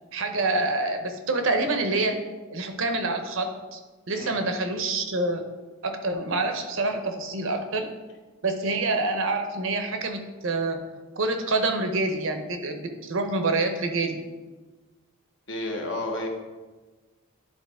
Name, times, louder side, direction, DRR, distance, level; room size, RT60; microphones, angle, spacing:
voice 1, 0.1-2.2 2.5-3.8 4.1-5.4 5.8-7.9 8.4-10.8 11.1-14.2, right 2 dB, 60° right, 6 dB, 0.7 m, -27 dB
voice 2, 15.5-16.3, left 1 dB, 55° left, 2 dB, 1.1 m, -31 dB
10.5 x 3.9 x 3.6 m, 1.3 s
head